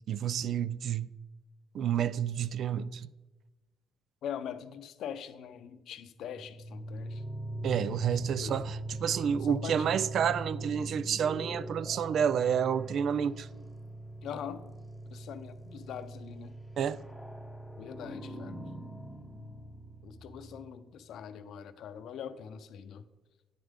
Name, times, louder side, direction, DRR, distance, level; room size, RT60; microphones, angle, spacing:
voice 1, 0.1-1.1 1.7-3.1 7.6-13.5 16.8-17.0, right 8 dB, 65° right, 0.3 m, -29 dB
voice 2, 4.2-7.2 8.4-8.6 9.4-9.9 14.2-14.6 15.1-16.6 17.8-18.6 20.0-23.0, left 8 dB, 75° left, 0.6 m, -42 dB
sound 1, 6.2-20.8, right 1 dB, ahead, 1.1 m, -42 dB
9.2 x 7.2 x 3.6 m
cardioid pair, 90°, 0 cm